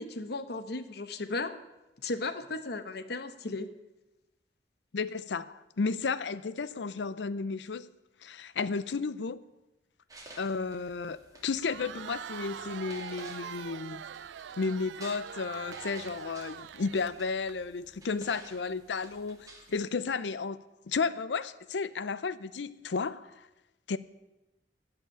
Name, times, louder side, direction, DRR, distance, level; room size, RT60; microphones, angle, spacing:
voice 1, 0.0-1.6 2.0-3.7 18.1-18.3, left 2 dB, 65° left, 0.9 m, -35 dB
voice 2, 4.9-7.9 8.2-9.4 10.4-14.1 14.6-20.6 20.9-23.5 23.9-24.0, left 4 dB, 90° left, 0.6 m, -33 dB
sound 1, 10.1-19.8, right 2 dB, 20° right, 2.4 m, -53 dB
Crowd, 11.5-17.5, right 8 dB, 80° right, 0.4 m, -43 dB
15.0 x 5.9 x 8.9 m
head